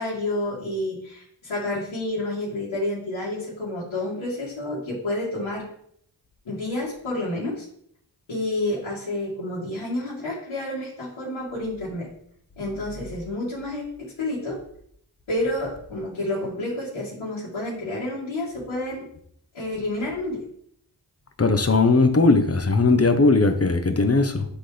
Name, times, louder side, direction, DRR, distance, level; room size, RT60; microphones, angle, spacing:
voice 1, 0.0-5.7 6.5-7.6 8.3-12.1 12.6-14.6 15.3-19.1 19.5-20.4, left 1 dB, 85° left, -8 dB, 2.2 m, -29 dB
voice 2, 21.4-24.5, left 3 dB, 30° left, 7 dB, 1.0 m, -18 dB
10.0 x 3.8 x 3.4 m, 0.68 s
cardioid pair, 45°, 46 cm